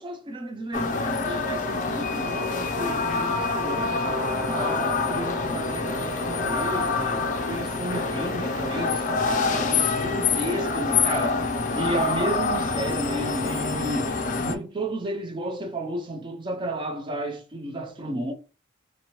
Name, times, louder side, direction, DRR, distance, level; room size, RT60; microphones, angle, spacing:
voice 1, 0.0-11.5 11.7-18.3, right 1 dB, 25° right, 0.3 m, -33 dB
sound 1, 0.7-14.5, left 4 dB, 40° left, 0.4 m, -26 dB
Brass instrument, 3.9-9.7, right 1 dB, 10° left, 1.0 m, -38 dB
2.8 x 2.6 x 2.9 m
head